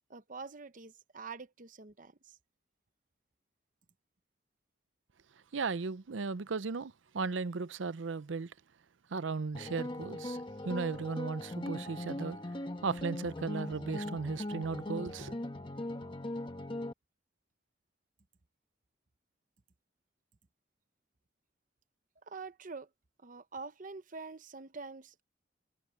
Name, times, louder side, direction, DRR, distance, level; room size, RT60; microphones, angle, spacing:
voice 1, 0.1-2.4 22.3-22.9 23.2-25.2, right 4 dB, 45° right, 0.9 m, -46 dB
voice 2, 5.5-8.5 9.1-10.4 10.6-12.4 12.8-15.3, right 4 dB, 85° right, 0.6 m, -36 dB
sound 1, 9.5-16.9, left 1 dB, 25° left, 1.3 m, -40 dB
head